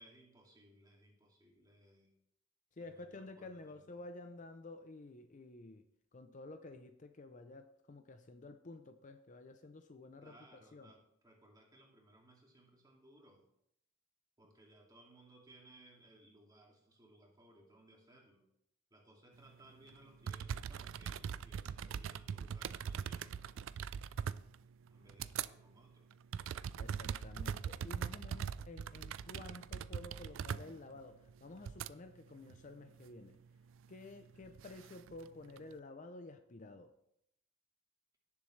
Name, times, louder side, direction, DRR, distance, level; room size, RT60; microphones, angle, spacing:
voice 1, 0.0-2.1 2.8-3.9 10.2-13.4 14.4-18.4 18.9-23.7 24.9-26.1, right 1 dB, 20° right, -1 dB, 2.3 m, -63 dB
voice 2, 2.7-10.9 26.8-33.4 33.9-36.9, left 2 dB, 35° left, 8 dB, 0.5 m, -52 dB
sound 1, 19.9-20.0 20.2-25.5 25.9-31.9 32.4-33.0 34.2-35.7, right 7 dB, 65° right, 0.3 m, -41 dB
17.0 x 7.0 x 3.2 m, 0.77 s
head